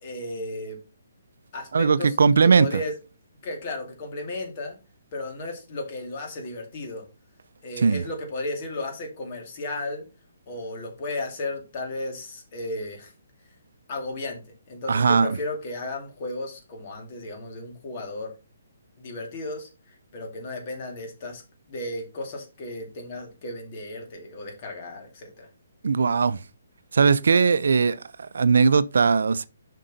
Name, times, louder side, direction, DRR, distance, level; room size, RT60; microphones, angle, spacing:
voice 1, 0.0-0.8 1.5-2.1 2.4-2.9 3.4-4.8 5.1-7.0 7.6-10.0 10.5-13.1 13.9-14.4 14.7-18.3 19.0-19.7 20.1-21.4 21.7-25.5, left 2 dB, 40° left, 2.4 m, -34 dB
voice 2, 1.7-2.8 7.8-8.0 14.9-15.4 25.8-26.4 26.9-29.5, right 5 dB, 75° right, 0.5 m, -19 dB
7.4 x 5.3 x 4.0 m
hypercardioid pair, 155°, 0 cm